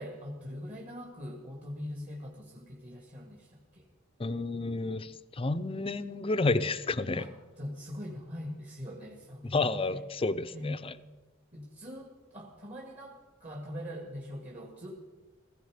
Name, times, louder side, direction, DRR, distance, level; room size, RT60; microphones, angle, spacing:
voice 1, 0.0-3.8 7.2-10.0 10.5-10.8 11.5-14.9, equal, 35° right, 0 dB, 2.0 m, -42 dB
voice 2, 4.2-7.3 9.4-10.9, left 3 dB, 30° left, 13 dB, 0.6 m, -30 dB
17.0 x 15.5 x 5.1 m, 1.3 s
head